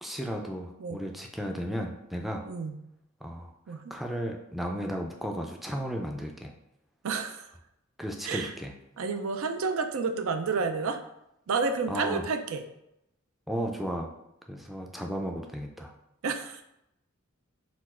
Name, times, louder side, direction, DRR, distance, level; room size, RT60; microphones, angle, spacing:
voice 1, 0.0-2.5 3.2-3.5 3.9-6.5 8.0-8.7 11.9-12.3 13.5-14.1 14.5-15.9, equal, ahead, 2 dB, 0.3 m, -34 dB
voice 2, 2.5-2.8 3.7-3.8 7.0-7.5 8.2-8.5 9.0-11.0 11.5-12.6 16.2-16.6, right 4 dB, 90° right, 7 dB, 0.5 m, -30 dB
4.2 x 2.4 x 4.2 m, 0.83 s
head